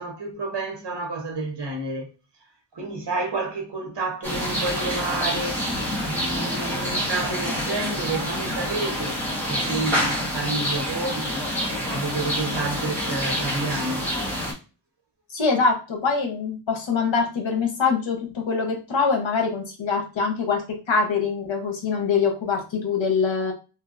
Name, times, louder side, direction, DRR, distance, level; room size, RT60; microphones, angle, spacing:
voice 1, 0.0-2.1 2.7-5.7 6.0-11.5 11.9-14.1, right 3 dB, 65° right, 1.0 m, -30 dB
sound 1, 4.2-14.5, equal, 5° left, 1.2 m, -27 dB
voice 2, 15.3-23.5, left 5 dB, 80° left, 1.0 m, -24 dB
2.9 x 2.5 x 2.5 m
wide cardioid pair, 115°, 45 cm